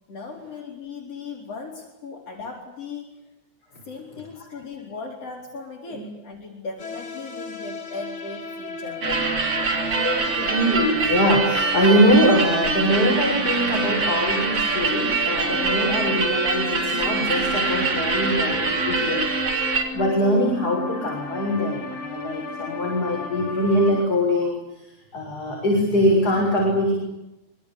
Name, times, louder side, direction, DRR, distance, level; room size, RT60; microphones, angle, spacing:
voice 1, 0.1-3.2 3.8-9.0, left 4 dB, 55° left, -1 dB, 5.6 m, -37 dB
sound 1, 6.8-24.1, left 3 dB, 80° left, 4.9 m, -34 dB
sound 2, 9.0-19.8, right 4 dB, 50° right, 4.4 m, -24 dB
voice 2, 9.9-19.3 19.6-24.8 25.1-26.9, equal, 30° left, 0 dB, 7.5 m, -22 dB
26.5 x 25.0 x 8.6 m, 0.93 s
omnidirectional pair, 3.3 m